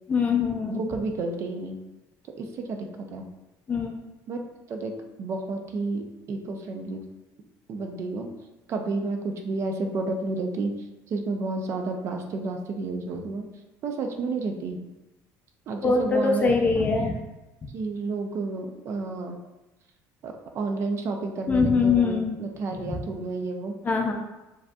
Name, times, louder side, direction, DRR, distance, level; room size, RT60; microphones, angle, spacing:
voice 1, 0.1-0.9 3.7-4.0 15.8-17.2 21.5-22.4 22.8-23.0 23.8-24.1, left 4 dB, 20° left, 2 dB, 0.4 m, -23 dB
voice 2, 0.7-1.8 2.4-3.3 4.3-4.4 4.7-4.9 5.2-7.0 7.7-8.3 8.7-10.7 11.1-13.5 13.8-14.9 15.7-16.9 17.7-19.4 20.2-23.7, right 3 dB, 40° right, 4 dB, 0.5 m, -31 dB
7.3 x 2.7 x 2.3 m, 1.0 s
cardioid pair, 165°, 7 cm